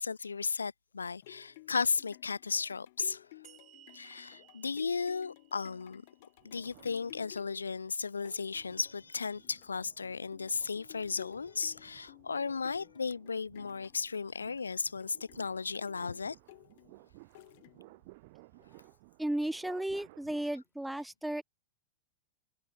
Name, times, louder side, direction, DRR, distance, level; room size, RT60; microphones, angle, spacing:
voice 1, 0.0-3.3 3.9-6.0 6.4-16.4, left 5 dB, 75° left, 0.5 m, -35 dB
sound 1, 0.9-18.1 18.6-18.7, left 20 dB, 50° left, 1.6 m, -56 dB
sound 2, 3.4-6.8, right 14 dB, 35° right, 2.5 m, -61 dB
sound 3, 6.4-7.8 8.3-20.4, right 24 dB, 50° right, 3.2 m, -59 dB
voice 2, 19.2-21.4, right 1 dB, 5° right, 0.4 m, -34 dB
figure-of-eight pair, 90°, 0 cm